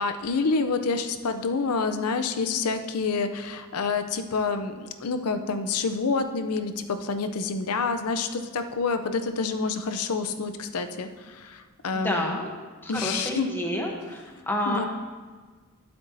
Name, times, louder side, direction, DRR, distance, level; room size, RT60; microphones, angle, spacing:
voice 1, 0.0-12.4 12.9-13.5 14.7-14.9, left 4 dB, 85° left, 8 dB, 0.6 m, -28 dB
voice 2, 11.9-12.5 12.8-14.2 14.5-14.9, left 1 dB, 10° left, 0 dB, 0.9 m, -29 dB
12.0 x 7.9 x 2.7 m, 1.4 s
head